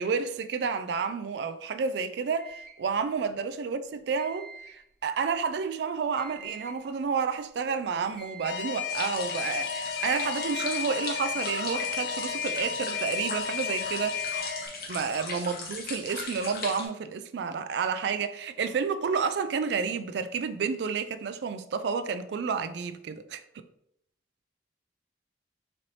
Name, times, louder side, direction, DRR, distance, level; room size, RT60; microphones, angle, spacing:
voice 1, 0.0-14.2 14.9-23.6, right 5 dB, 75° right, 0.3 m, -30 dB
sound 1, 2.4-2.9 4.2-4.9 6.2-6.9 8.2-8.9 10.2-10.9 12.2-12.8 14.2-14.9 16.2-16.3, right 4 dB, ahead, 0.8 m, -46 dB
Alarm, 8.4-14.7, left 7 dB, 75° left, 0.3 m, -33 dB
sound 2, 8.9-16.9, left 3 dB, 55° left, 0.8 m, -38 dB
3.9 x 3.2 x 2.9 m
head